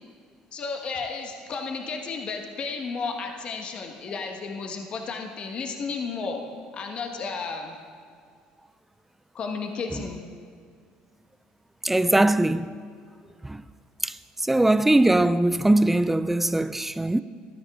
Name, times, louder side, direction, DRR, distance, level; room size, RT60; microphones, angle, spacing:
voice 1, 0.5-6.4 6.7-7.8 9.3-10.3, left 4 dB, 40° left, 1.3 m, -33 dB
voice 2, 11.8-12.7 13.4-13.6 14.0-17.2, right 1 dB, 10° right, 0.3 m, -21 dB
16.5 x 12.5 x 3.7 m
cardioid pair, 115°, 3 cm